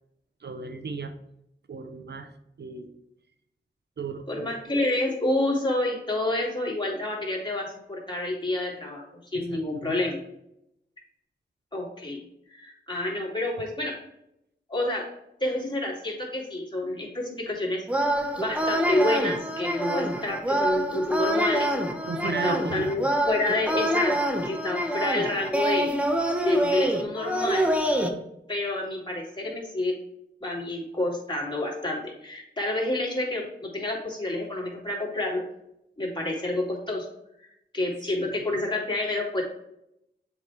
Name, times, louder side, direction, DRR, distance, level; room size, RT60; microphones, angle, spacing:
voice 1, 0.4-1.1 1.7-2.3 2.6-3.0 4.0-4.6 9.3-10.0 22.1-22.9 38.2-38.3, right 4 dB, 65° right, 8 dB, 0.7 m, -35 dB
voice 2, 4.3-10.2 11.7-12.2 12.5-14.0 14.7-15.1 15.4-17.9 18.4-21.7 22.2-24.2 24.4-25.9 26.4-27.7 28.5-30.0 30.4-35.4 36.0-37.1 37.7-39.4, left 1 dB, 25° left, -3 dB, 2.7 m, -28 dB
sound 1, 17.9-28.1, equal, 5° right, 1.1 m, -26 dB
7.2 x 4.8 x 3.3 m, 0.80 s
cardioid pair, 55°, 19 cm